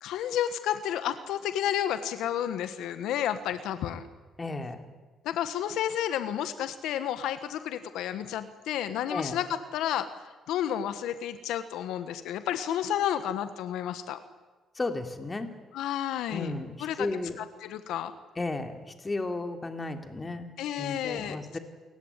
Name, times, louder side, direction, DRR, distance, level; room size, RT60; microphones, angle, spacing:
voice 1, 0.0-4.0 5.2-10.1 10.5-14.2 15.7-16.5 16.8-17.1 17.4-18.1 20.6-21.6, left 10 dB, 90° left, 11 dB, 1.4 m, -31 dB
voice 2, 4.4-4.8 9.1-9.3 14.8-15.5 16.3-17.3 18.4-18.8 19.0-20.5 20.8-21.6, left 2 dB, 25° left, 6 dB, 3.1 m, -33 dB
28.5 x 15.5 x 9.9 m, 1.3 s
cardioid pair, 90°, 0 cm